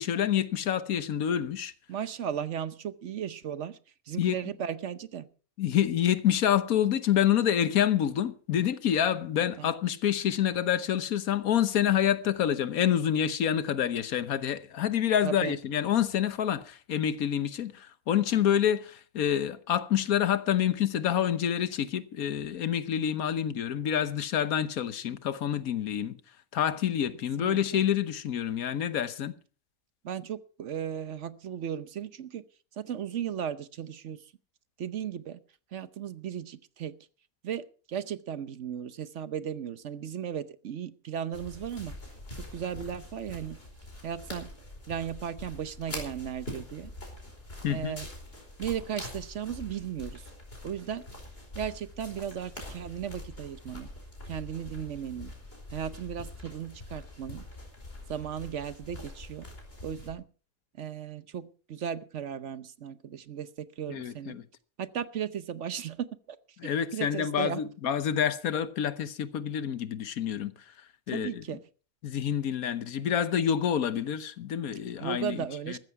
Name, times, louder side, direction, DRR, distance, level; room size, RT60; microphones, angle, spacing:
voice 1, 0.0-1.7 4.2-4.4 5.6-26.2 26.5-29.3 47.6-48.0 63.9-64.4 66.6-70.7 71.1-71.6 72.0-75.8, left 9 dB, 85° left, 1.4 m, -27 dB
voice 2, 1.9-3.8 4.1-5.3 9.6-9.7 15.2-15.5 27.4-27.6 30.0-32.4 32.8-34.3 34.8-35.4 35.7-37.0 37.4-42.0 42.4-43.6 44.0-44.5 44.9-46.9 47.7-48.1 48.6-50.3 50.6-51.1 51.5-53.9 54.3-55.3 55.7-57.4 58.1-59.5 59.8-60.3 60.8-64.4 64.8-66.4 66.9-67.6 71.1-71.6 75.0-75.8, right 9 dB, 60° right, 1.1 m, -36 dB
sound 1, 41.3-60.1, left 1 dB, 45° left, 5.0 m, -44 dB
15.0 x 13.5 x 4.6 m
omnidirectional pair, 1.5 m